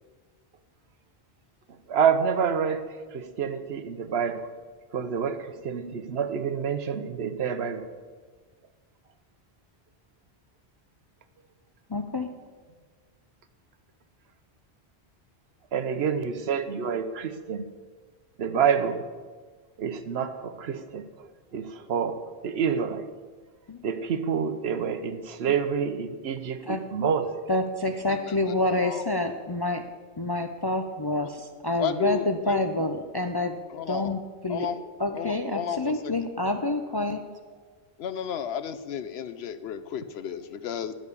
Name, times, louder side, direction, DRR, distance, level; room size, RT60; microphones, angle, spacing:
voice 1, 1.9-2.8 3.1-4.4 4.9-7.8 15.7-17.6 18.4-19.0 19.8-21.0 21.5-23.1 23.8-27.4, right 7 dB, 70° right, 10 dB, 1.0 m, -27 dB
voice 2, 11.9-12.3 23.7-23.9 26.6-26.8 27.5-29.8 30.2-33.6 33.9-34.7 35.0-37.2, left 2 dB, 35° left, 6 dB, 0.4 m, -28 dB
voice 3, 31.8-32.6 33.7-34.1 34.5-34.8 35.1-36.1 38.0-40.9, left 8 dB, 75° left, 11 dB, 0.8 m, -33 dB
11.0 x 5.1 x 8.3 m, 1.5 s
omnidirectional pair, 1.1 m